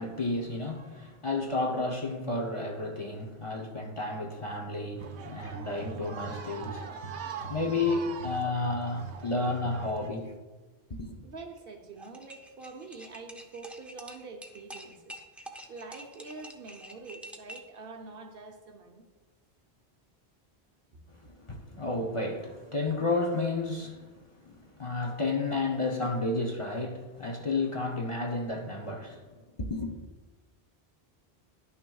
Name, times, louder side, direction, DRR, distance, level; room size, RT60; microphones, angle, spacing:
voice 1, 0.0-6.9 7.5-10.3 10.9-11.2 21.1-24.1 24.4-29.2 29.6-30.0, left 3 dB, 35° left, 0.8 m, -32 dB
sound 1, 5.0-10.1, right 5 dB, 85° right, 0.9 m, -41 dB
voice 2, 11.2-19.0, right 3 dB, 65° right, 1.0 m, -46 dB
sound 2, 12.0-17.8, right 1 dB, ahead, 0.4 m, -47 dB
11.5 x 6.1 x 2.3 m
omnidirectional pair, 1.1 m